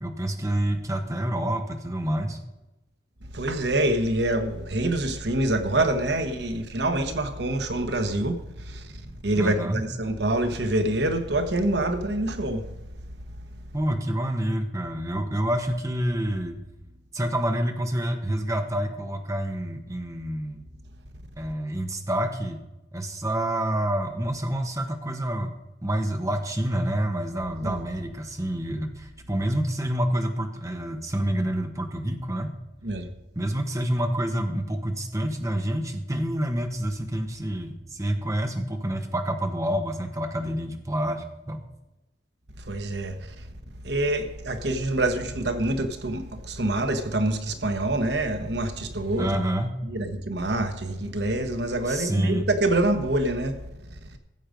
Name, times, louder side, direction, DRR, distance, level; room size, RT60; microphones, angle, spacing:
voice 1, 0.0-2.4 9.3-9.8 13.7-16.6 17.1-20.6 21.4-22.6 22.9-25.5 25.8-32.5 33.3-41.6 49.2-49.8 51.9-52.5, right 1 dB, 20° right, 1.3 m, -28 dB
voice 2, 3.3-12.7 27.6-27.8 32.8-33.1 42.6-43.5 43.8-49.4 49.8-53.6 53.9-54.2, right 1 dB, 65° right, 1.2 m, -26 dB
15.0 x 7.7 x 5.2 m
head